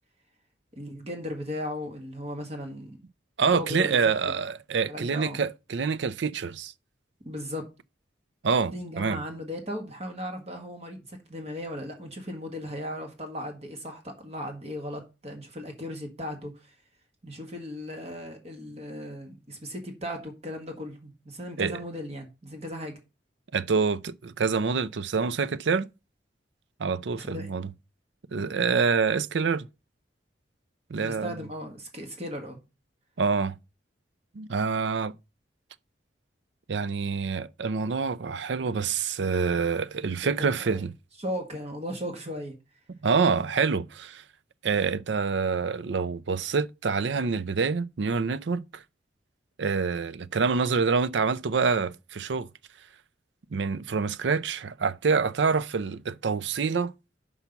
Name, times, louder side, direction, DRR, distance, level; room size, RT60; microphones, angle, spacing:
voice 1, 0.8-3.0 3.5-4.0 4.2-4.3 4.9-5.4 7.2-7.7 8.7-16.7 17.2-23.0 27.1-27.5 31.0-32.6 40.5-40.8 41.2-42.6, equal, 35° right, 1.5 m, -37 dB
voice 2, 3.4-6.7 8.4-9.2 21.6-21.8 23.5-25.9 26.8-27.7 28.3-29.7 30.9-31.4 33.2-33.5 34.3-35.1 36.7-40.9 43.0-44.2 44.6-48.8 49.6-52.5 53.5-56.9, right 5 dB, 70° right, 0.5 m, -26 dB
5.9 x 5.5 x 6.9 m
head